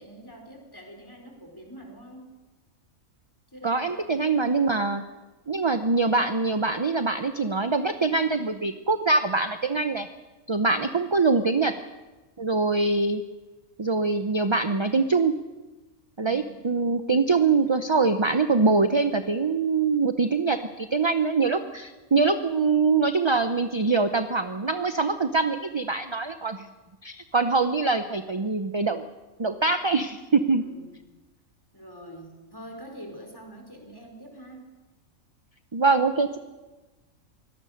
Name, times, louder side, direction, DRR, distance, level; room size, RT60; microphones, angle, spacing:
voice 1, 0.0-2.3 3.5-4.2 10.7-11.0 16.2-16.6 30.5-31.0 31.7-34.7, equal, 15° left, 2 dB, 4.5 m, -45 dB
voice 2, 3.6-5.0 5.5-10.1 10.5-11.7 12.4-13.2 13.8-15.3 16.2-26.7 27.0-29.0 29.4-30.6 35.7-36.4, right 4 dB, 30° right, 8 dB, 0.6 m, -24 dB
24.0 x 18.0 x 6.5 m, 1.2 s
omnidirectional pair, 1.4 m